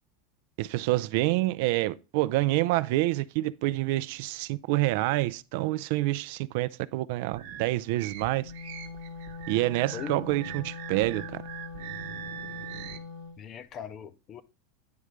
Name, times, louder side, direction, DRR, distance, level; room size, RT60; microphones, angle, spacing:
voice 1, 0.6-8.5 9.5-11.4, right 18 dB, 60° right, 0.3 m, -27 dB
sound 1, 7.3-13.0, right 10 dB, 80° right, 0.9 m, -42 dB
Wind instrument woodwind instrument, 8.2-13.4, left 5 dB, 80° left, 1.2 m, -42 dB
voice 2, 13.4-14.4, left 7 dB, 30° left, 0.5 m, -40 dB
9.4 x 3.3 x 4.9 m
supercardioid pair, 150°, 0 cm